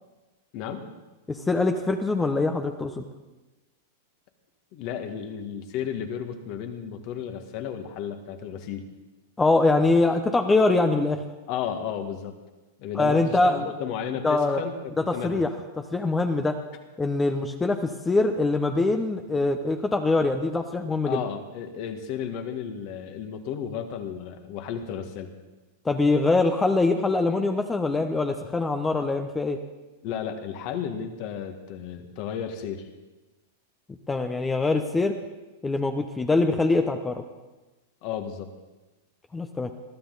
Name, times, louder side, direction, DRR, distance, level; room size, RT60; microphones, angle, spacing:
voice 1, 0.5-0.9 4.7-8.8 11.5-12.4 12.8-15.4 21.1-25.3 30.0-32.9 38.0-38.5, left 8 dB, 50° left, 6 dB, 1.9 m, -33 dB
voice 2, 1.3-3.0 9.4-11.2 12.9-13.6 14.2-14.6 15.0-15.5 15.9-16.6 17.0-21.2 25.8-29.6 34.1-35.1 35.6-37.2 39.3-39.7, left 3 dB, 15° left, 6 dB, 0.9 m, -23 dB
21.0 x 13.0 x 4.1 m, 1.1 s
hypercardioid pair, 115°, 0 cm